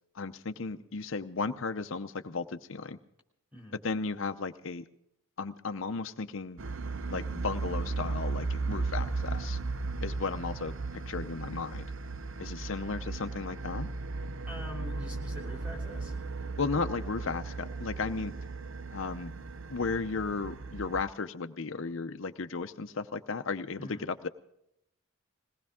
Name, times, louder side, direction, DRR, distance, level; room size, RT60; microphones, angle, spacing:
voice 1, 0.1-3.0 3.8-4.8 5.4-6.6 7.1-9.6 10.0-10.7 11.1-11.9 12.4-13.9 16.6-18.3 18.9-19.3 19.7-24.0 24.2-24.3, left 4 dB, 60° left, 8 dB, 0.7 m, -34 dB
sound 1, 6.6-21.0, right 3 dB, 60° right, 0.7 m, -36 dB
voice 2, 14.5-16.2 23.8-24.1, left 1 dB, 5° right, -1 dB, 3.2 m, -44 dB
21.5 x 18.0 x 3.6 m, 0.77 s
head